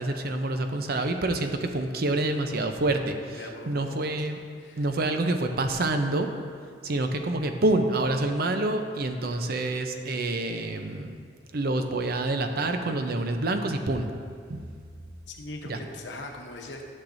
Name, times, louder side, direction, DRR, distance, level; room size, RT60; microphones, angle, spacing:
voice 1, 0.0-4.4 4.8-6.3 6.8-11.2 11.5-14.1 14.5-14.7 15.6-15.8, right 2 dB, 60° right, 6 dB, 0.6 m, -27 dB
voice 2, 3.3-4.0 4.6-4.9 15.3-16.8, left 2 dB, 85° left, 2 dB, 0.9 m, -40 dB
11.5 x 6.5 x 2.6 m, 2.1 s
head